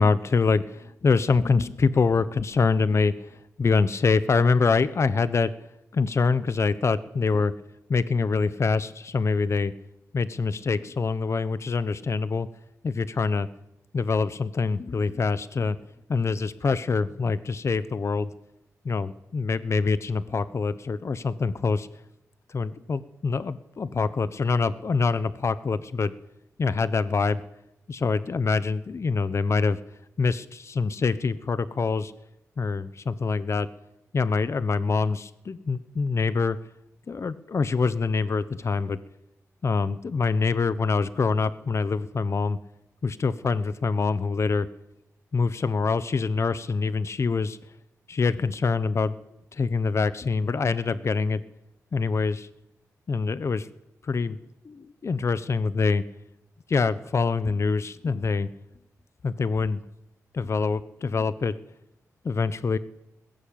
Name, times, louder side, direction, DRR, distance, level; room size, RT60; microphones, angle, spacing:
voice 1, 0.0-5.5 5.9-7.5 7.9-9.7 10.1-12.5 12.8-13.5 13.9-15.8 16.1-18.3 18.8-21.9 22.5-26.1 26.6-27.4 27.9-29.8 30.2-32.1 32.6-33.7 34.1-36.6 37.1-39.0 39.6-42.6 43.0-44.7 45.3-47.6 48.1-49.1 49.5-51.4 51.9-52.5 53.1-53.7 54.0-54.4 54.6-56.0 56.7-58.5 59.2-59.8 60.3-61.5 62.2-62.8, left 4 dB, 50° left, 15 dB, 1.2 m, -25 dB
21.0 x 17.0 x 8.9 m, 0.82 s
cardioid pair, 75°, 6 cm